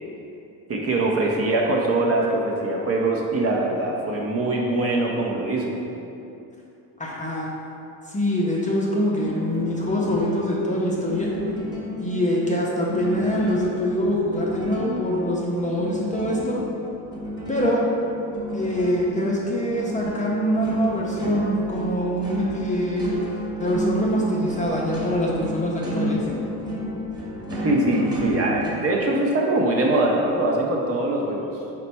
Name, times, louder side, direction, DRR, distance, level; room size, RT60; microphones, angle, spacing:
voice 1, 0.7-5.8 27.5-31.5, right 2 dB, 35° right, -2 dB, 0.5 m, -23 dB
voice 2, 7.0-7.5 8.1-11.3 12.0-16.6 17.5-17.8 18.5-23.1 23.6-26.2, equal, 20° left, -4 dB, 0.5 m, -24 dB
sound 1, 9.2-28.7, equal, 10° right, 0.8 m, -31 dB
4.1 x 2.2 x 4.1 m, 2.8 s
supercardioid pair, 85°, 43 cm